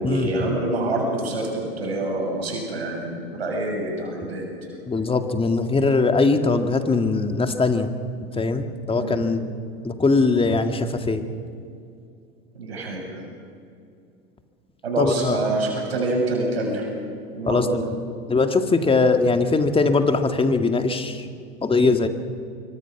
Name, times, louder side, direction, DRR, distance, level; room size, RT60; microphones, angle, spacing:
voice 1, 0.0-4.7 8.9-9.2 12.5-13.2 14.8-16.9 17.3-17.9, right 2 dB, 85° right, 0 dB, 6.8 m, -26 dB
voice 2, 4.9-7.9 8.4-9.4 9.8-11.2 15.0-15.4 17.5-17.8 18.3-21.3 21.6-22.1, left 3 dB, 20° left, 7 dB, 2.0 m, -21 dB
26.0 x 24.0 x 6.1 m, 2.5 s
hypercardioid pair, 80°, 30 cm